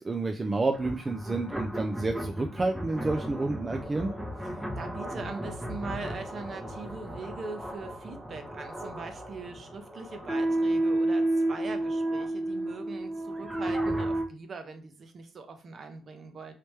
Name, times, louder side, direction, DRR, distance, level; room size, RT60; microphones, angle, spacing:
voice 1, 0.0-4.1, right 3 dB, 25° right, 4 dB, 0.3 m, -29 dB
sound 1, 0.7-14.2, right 1 dB, 10° right, 0.7 m, -32 dB
voice 2, 4.4-16.5, right 4 dB, 50° right, 7 dB, 0.7 m, -41 dB
3.2 x 2.9 x 3.2 m, 0.39 s
cardioid pair, 90°, 0 cm